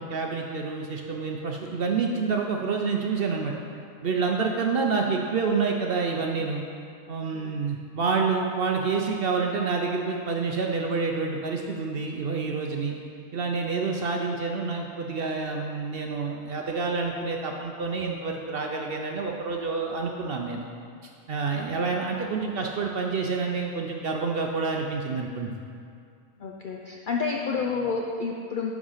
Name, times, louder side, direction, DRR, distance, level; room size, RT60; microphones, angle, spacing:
voice 1, 0.0-3.5 4.0-6.6 7.1-12.9 13.3-20.6 21.3-25.6, right 4 dB, 60° right, 1 dB, 0.6 m, -28 dB
voice 2, 26.4-28.7, left 5 dB, 65° left, 0 dB, 0.5 m, -29 dB
9.8 x 3.6 x 5.5 m, 2.4 s
omnidirectional pair, 1.4 m